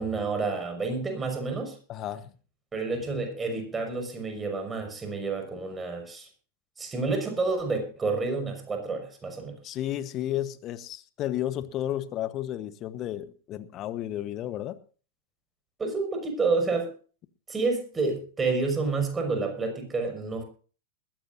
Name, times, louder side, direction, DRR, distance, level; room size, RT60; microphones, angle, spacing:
voice 1, 0.0-1.8 2.7-6.3 6.8-9.7 15.8-16.9 17.5-20.4, right 3 dB, 15° right, 5 dB, 5.7 m, -29 dB
voice 2, 1.9-2.3 9.6-14.8, left 12 dB, 35° left, 14 dB, 1.1 m, -32 dB
21.0 x 15.0 x 2.7 m, 0.38 s
figure-of-eight pair, 95°, 0 cm